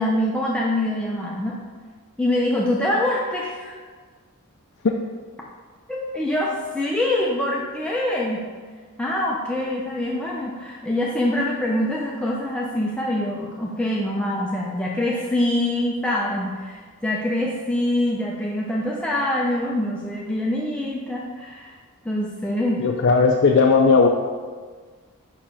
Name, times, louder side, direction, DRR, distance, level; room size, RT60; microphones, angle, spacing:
voice 1, 0.0-1.5 2.2-3.8 5.9-8.4 9.0-21.8 22.0-22.8, left 1 dB, 5° left, -4 dB, 0.6 m, -24 dB
voice 2, 22.8-24.1, left 4 dB, 55° left, 1 dB, 0.5 m, -16 dB
5.7 x 4.8 x 5.6 m, 1.5 s
head